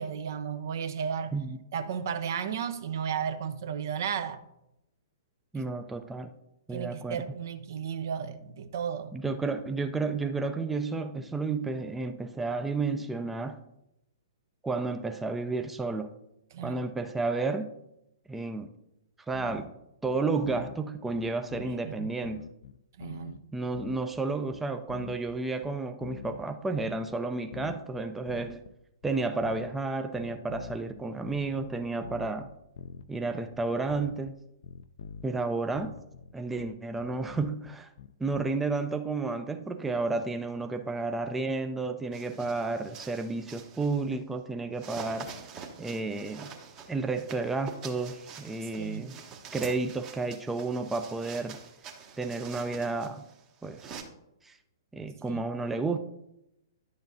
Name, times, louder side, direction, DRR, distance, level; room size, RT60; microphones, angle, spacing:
voice 1, 0.0-1.3 1.7-4.4 5.6-5.7 6.7-9.2 16.5-16.8 21.8-22.1 23.0-23.4 48.8-49.1 55.3-55.4, right 7 dB, 55° right, 0.6 m, -34 dB
voice 2, 5.5-6.3 6.7-7.2 9.1-13.6 14.6-16.1 16.6-17.7 18.3-18.7 19.3-19.7 20.0-22.4 23.5-28.6 29.0-32.5 33.1-34.3 35.2-35.9 36.3-37.9 38.2-45.3 45.8-46.5 46.9-49.2 49.5-51.6 52.2-53.2 53.6-54.0 54.4-54.6 54.9-56.0, right 3 dB, 5° right, 0.4 m, -31 dB
sound 1, 19.3-19.7 20.0-20.8 21.1-22.0 22.2-23.4 23.7-24.2 24.5-26.5 26.8-27.2 27.5-28.7 29.0-29.8 30.1-33.2 33.5-34.3 34.6-35.4 35.7-38.4, left 8 dB, 60° left, 0.4 m, -45 dB
sound 2, 42.1-44.1 44.7-54.0, right 6 dB, 30° right, 1.0 m, -46 dB
11.0 x 6.9 x 2.6 m
figure-of-eight pair, 115°, 2 cm